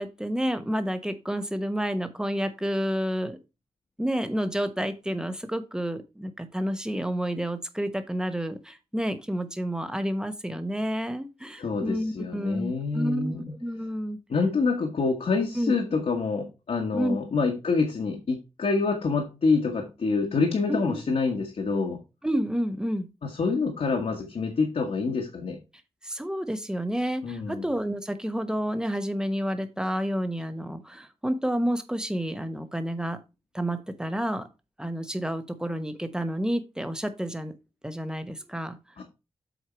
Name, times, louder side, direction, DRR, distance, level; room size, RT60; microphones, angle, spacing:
voice 1, 0.0-3.4 4.0-14.2 15.5-15.7 16.9-17.2 20.7-21.0 22.2-23.1 26.0-33.2 33.5-34.4 34.8-37.5 37.8-38.8, equal, 5° right, 9 dB, 1.1 m, -30 dB
voice 2, 11.6-13.6 14.3-22.0 23.2-25.6 27.2-27.7 39.0-39.1, left 4 dB, 65° left, 2 dB, 1.6 m, -26 dB
8.0 x 4.6 x 4.6 m, 0.27 s
wide cardioid pair, 115°, 11 cm